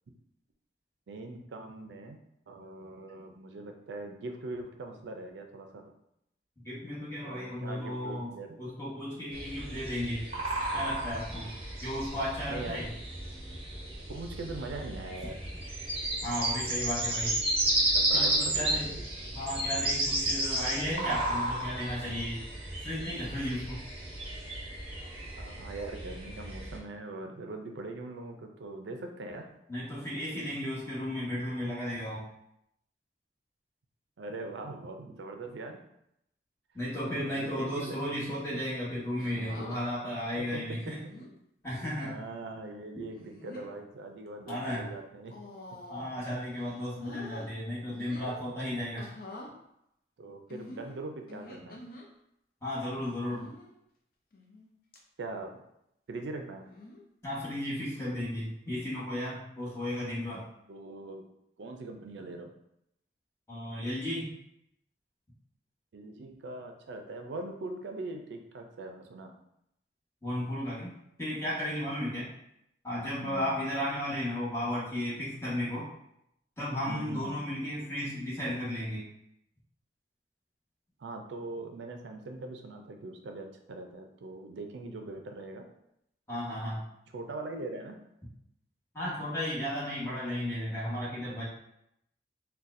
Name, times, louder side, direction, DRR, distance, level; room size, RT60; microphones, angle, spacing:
voice 1, 1.1-2.2 2.5-5.8 7.2-8.6 10.9-11.0 12.5-12.8 14.1-15.4 17.9-19.0 25.4-29.5 34.2-35.8 37.0-38.0 40.3-41.0 42.0-45.4 50.2-51.8 55.2-55.6 56.1-56.6 60.7-61.2 61.6-62.5 65.9-69.3 73.2-73.5 76.9-77.4 81.0-85.7 87.1-88.0, right 2 dB, 85° right, 4 dB, 0.4 m, -41 dB
voice 2, 6.6-8.3 8.6-10.3 10.7-11.5 11.8-12.9 16.2-17.4 18.1-18.9 19.3-22.4 22.8-23.8 29.7-32.2 36.7-41.0 41.6-42.2 44.5-44.9 45.9-49.1 52.6-53.5 57.2-60.4 63.5-64.3 70.2-70.9 71.2-72.3 72.8-75.9 76.6-79.0 86.3-86.8 88.9-91.4, left 1 dB, 15° left, -8 dB, 1.1 m, -34 dB
sound 1, 9.3-26.8, right 1 dB, 35° right, 0.7 m, -33 dB
sound 2, 39.2-39.8 40.7-41.3 41.9-42.2 43.1-43.7 44.3-44.5 45.3-46.2 46.5-47.5 47.9-48.4 49.0-49.5 50.5-52.1 53.3-53.7 54.3-54.7 54.9-55.0 56.6-57.0 58.1-58.4, left 2 dB, 50° left, 0.5 m, -47 dB
4.0 x 2.2 x 2.5 m, 0.79 s
head